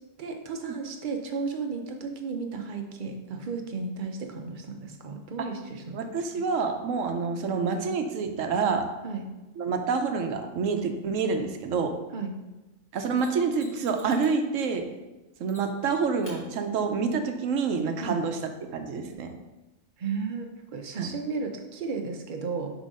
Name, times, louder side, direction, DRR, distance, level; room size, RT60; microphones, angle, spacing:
voice 1, 0.2-6.0 9.0-9.3 12.1-12.4 18.0-18.2 20.0-22.7, right 4 dB, 45° right, 4 dB, 0.7 m, -34 dB
voice 2, 5.9-8.9 9.6-12.0 12.9-14.8 15.4-18.4 18.7-19.3 21.0-21.1, right 5 dB, 70° right, 6 dB, 1.0 m, -27 dB
Mechanisms, 13.2-14.4 15.5-15.9 16.2-16.4 19.1-19.2, equal, 25° left, 2.1 m, -50 dB
7.5 x 3.0 x 5.2 m, 1.1 s
omnidirectional pair, 1.4 m